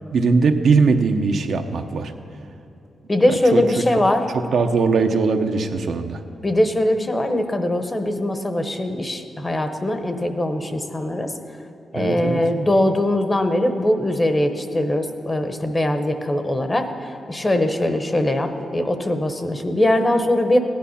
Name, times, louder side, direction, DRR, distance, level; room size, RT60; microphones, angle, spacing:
voice 1, 0.1-2.1 3.5-3.8 4.5-6.2 11.9-12.4, right 4 dB, 65° right, 5 dB, 0.8 m, -20 dB
voice 2, 3.1-4.3 6.4-11.3 11.9-20.6, left 1 dB, 20° left, 7 dB, 0.9 m, -21 dB
16.0 x 10.5 x 5.7 m, 2.9 s
wide cardioid pair, 135°, 0 cm